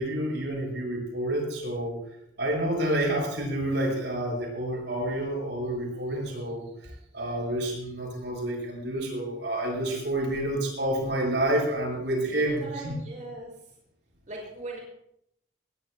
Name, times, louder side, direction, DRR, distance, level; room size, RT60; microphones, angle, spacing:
voice 1, 0.0-2.0 2.4-12.9, right 1 dB, 85° right, -1 dB, 7.2 m, -29 dB
voice 2, 12.2-13.8 14.3-14.8, right 2 dB, 45° right, -2 dB, 6.2 m, -40 dB
21.5 x 19.5 x 2.2 m, 0.75 s
head